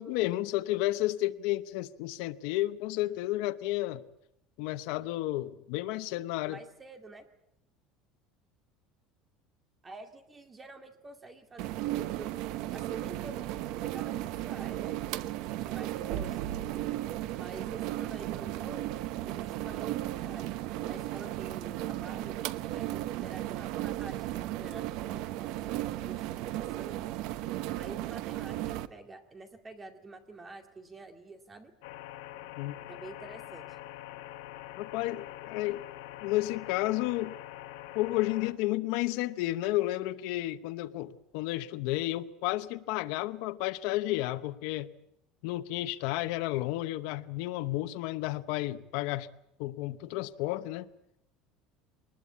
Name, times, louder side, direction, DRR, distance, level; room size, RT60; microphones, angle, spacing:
voice 1, 0.0-4.0 4.6-6.6 32.6-32.7 34.8-35.8 36.2-37.4 37.9-44.9 45.4-49.3 49.6-50.9, left 17 dB, 65° left, 0.8 m, -32 dB
voice 2, 6.4-7.3 9.8-12.3 12.7-16.8 17.3-19.0 19.2-20.5 20.8-22.4 22.7-27.1 27.8-31.7 32.9-33.7, right 3 dB, 15° right, 2.2 m, -48 dB
sound 1, 11.6-28.9, right 14 dB, 55° right, 0.9 m, -35 dB
sound 2, 31.8-38.5, left 14 dB, 90° left, 1.7 m, -45 dB
22.5 x 20.0 x 8.4 m
cardioid pair, 170°, 0 cm